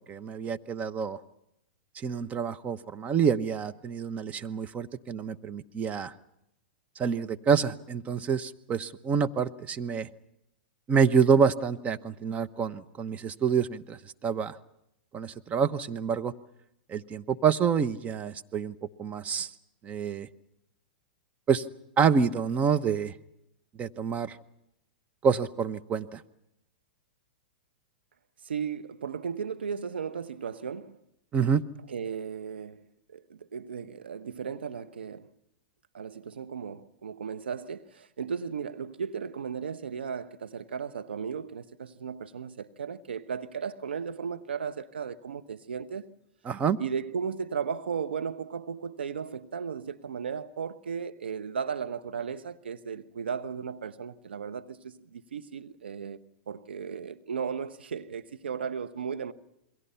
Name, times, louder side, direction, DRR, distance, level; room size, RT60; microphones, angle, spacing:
voice 1, 0.1-1.2 2.0-6.1 7.0-10.1 10.9-14.6 15.1-16.3 16.9-19.5 19.8-20.3 21.5-21.6 22.0-23.1 23.8-24.4 25.2-26.2 31.3-31.6 46.4-46.8, right 6 dB, 25° right, 1.0 m, -27 dB
voice 2, 28.4-31.0 31.9-35.3 35.9-46.1 46.8-56.2 56.5-59.3, right 6 dB, 85° right, 1.2 m, -35 dB
28.5 x 22.5 x 5.7 m
hypercardioid pair, 115°, 6 cm